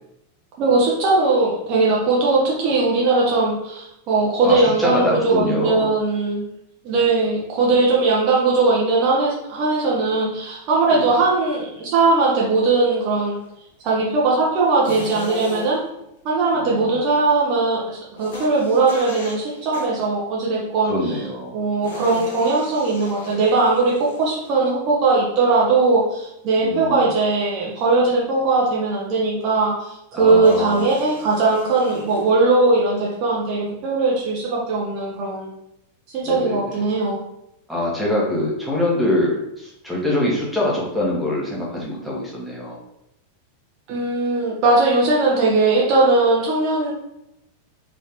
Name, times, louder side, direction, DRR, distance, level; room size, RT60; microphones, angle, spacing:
voice 1, 0.6-6.5 6.8-13.4 13.8-15.8 16.2-20.9 21.5-35.5 36.1-37.2 43.9-46.9, right 3 dB, 40° right, -4 dB, 0.9 m, -19 dB
voice 2, 4.4-5.9 10.9-11.0 16.5-17.0 20.9-21.5 26.6-27.1 30.1-30.8 36.2-36.9 37.7-42.8, left 1 dB, ahead, -5 dB, 1.6 m, -24 dB
sound 1, 14.8-16.0 18.2-20.1 21.8-24.7 27.1-27.5 30.4-32.3, left 3 dB, 60° left, 0.9 m, -38 dB
4.0 x 3.7 x 3.0 m, 0.83 s
figure-of-eight pair, 90°, 0 cm